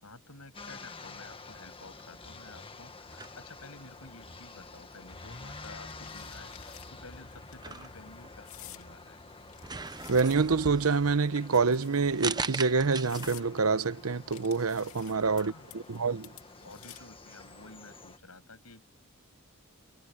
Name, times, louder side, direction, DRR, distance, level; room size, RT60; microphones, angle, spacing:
voice 1, 0.0-9.2 15.3-16.0 16.6-18.8, left 3 dB, 85° left, 7.0 m, -52 dB
sound 1, 0.5-18.2, left 3 dB, 25° left, 1.6 m, -49 dB
sound 2, 3.1-18.0, right 4 dB, 20° right, 0.8 m, -43 dB
sound 3, 5.6-6.9 7.3-7.5 8.4-8.9 9.5-10.7 11.5-12.1 12.6-12.7 13.0-13.5 14.3-15.4 15.7-17.2, left 13 dB, 70° left, 2.7 m, -50 dB
voice 2, 10.1-16.3, right 4 dB, 75° right, 0.8 m, -27 dB
head